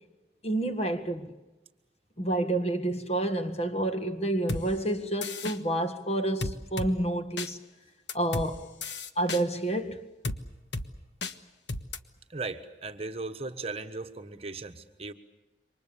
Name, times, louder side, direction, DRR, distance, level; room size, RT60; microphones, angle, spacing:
voice 1, 0.4-1.3 2.2-7.6 8.1-8.7 9.2-10.1, right 1 dB, 35° left, 1.7 m, -29 dB
sound 1, 4.5-4.6 5.2-5.6 6.4-6.9 7.4-7.5 8.1-8.5 8.8-9.4 10.2-10.4 10.7-10.9 11.2-11.3 11.7-12.0, left 3 dB, 85° left, 1.4 m, -33 dB
voice 2, 12.3-15.1, right 3 dB, 35° right, 1.2 m, -37 dB
28.0 x 24.5 x 6.9 m
head